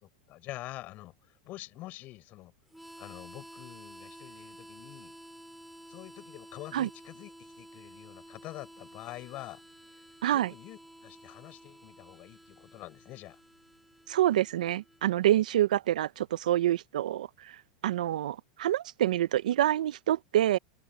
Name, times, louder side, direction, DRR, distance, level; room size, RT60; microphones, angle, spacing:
voice 1, 0.0-2.5 3.0-5.1 5.9-9.6 10.3-13.4, left 17 dB, 40° left, 5.8 m, -46 dB
Harmonica, 2.7-15.3, equal, ahead, 5.8 m, -52 dB
voice 2, 10.2-10.5 14.1-20.6, right 13 dB, 85° right, 0.5 m, -27 dB
supercardioid pair, 135°, 4 cm